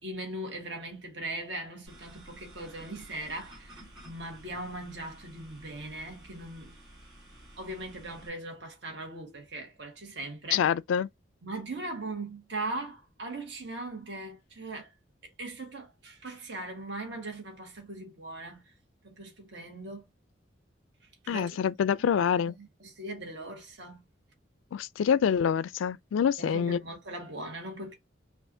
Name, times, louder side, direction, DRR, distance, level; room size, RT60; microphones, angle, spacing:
voice 1, 0.0-3.7 4.0-6.7 7.6-10.7 11.4-14.9 15.2-18.7 19.0-20.0 21.2-21.6 22.0-22.4 22.8-24.0 26.4-27.9, right 2 dB, 60° right, 1.4 m, -39 dB
sound 1, 1.9-8.3, right 1 dB, 20° right, 2.6 m, -52 dB
voice 2, 10.5-11.1 21.3-22.5 24.7-26.8, left 7 dB, 85° left, 0.3 m, -26 dB
5.5 x 2.5 x 2.6 m
head